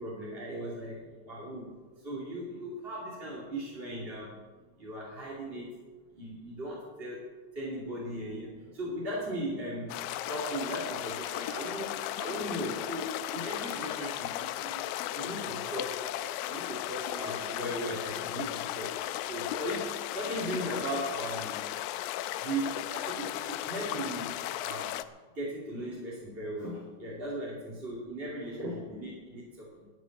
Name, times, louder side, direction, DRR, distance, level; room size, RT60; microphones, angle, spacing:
voice 1, 0.0-4.4 4.7-5.8 6.1-19.0 19.3-21.7 22.2-25.0 25.3-29.9, right 1 dB, 20° right, -6 dB, 2.4 m, -38 dB
sound 1, 9.9-25.0, left 14 dB, 90° left, 2.3 m, -36 dB
12.5 x 7.4 x 10.0 m, 1.4 s
omnidirectional pair, 4.1 m